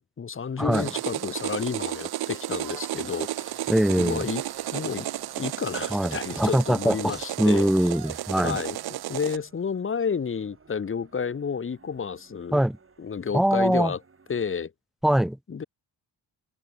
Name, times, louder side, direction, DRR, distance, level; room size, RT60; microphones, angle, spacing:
voice 1, 0.0-3.6 3.9-4.4 4.7-5.1 5.4-7.7 8.4-12.6 13.0-14.0 14.3-14.7 15.5-15.6, left 6 dB, 30° left, 1.1 m, -31 dB
voice 2, 0.6-0.9 3.7-4.3 5.9-8.6 12.5-12.8 13.3-13.9 15.0-15.4, right 1 dB, ahead, 0.5 m, -23 dB
sound 1, 0.7-9.4, right 14 dB, 60° right, 0.7 m, -33 dB
sound 2, 0.8-14.5, right 4 dB, 30° right, 6.3 m, -59 dB
sound 3, 3.5-8.3, left 13 dB, 85° left, 4.6 m, -60 dB
cardioid pair, 100°, 42 cm